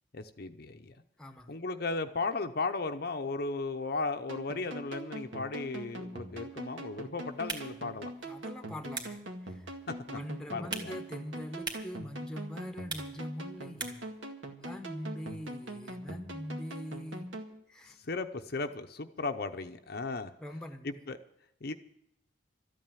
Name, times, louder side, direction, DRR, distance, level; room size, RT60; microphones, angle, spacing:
voice 1, 0.1-1.0 1.5-8.1 10.1-10.2 10.5-11.0 18.0-20.3 20.8-21.2 21.6-21.7, left 3 dB, 55° left, 6 dB, 0.8 m, -35 dB
voice 2, 1.2-1.6 8.2-9.7 10.1-14.0 14.6-17.3 17.7-18.0 20.4-20.9, equal, 5° left, 6 dB, 1.0 m, -42 dB
sound 1, 4.3-17.5, right 1 dB, 80° right, 2.0 m, -43 dB
sound 2, 7.3-14.2, right 3 dB, 20° right, 2.0 m, -45 dB
13.5 x 8.9 x 9.2 m, 0.80 s
head